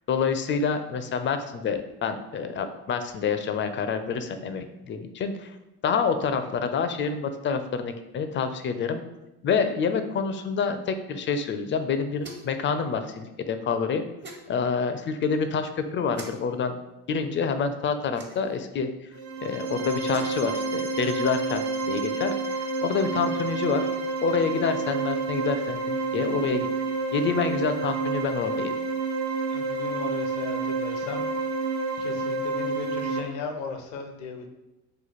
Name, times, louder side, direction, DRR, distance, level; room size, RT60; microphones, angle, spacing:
voice 1, 0.1-5.5 5.8-9.0 9.4-14.0 14.5-16.8 17.1-19.1 19.4-23.9 24.2-26.7 27.1-28.7, left 5 dB, 35° left, 9 dB, 0.4 m, -27 dB
sound 1, 12.2-12.6 14.2-14.4 16.1-16.3 18.1-18.6 19.9-20.4, right 2 dB, 30° right, 0.9 m, -44 dB
sound 2, 19.1-33.2, right 3 dB, 55° right, 0.7 m, -29 dB
voice 2, 29.5-31.3 32.0-34.5, left 4 dB, 85° left, 5 dB, 0.6 m, -36 dB
3.1 x 2.2 x 4.1 m, 0.96 s
supercardioid pair, 75°, 34 cm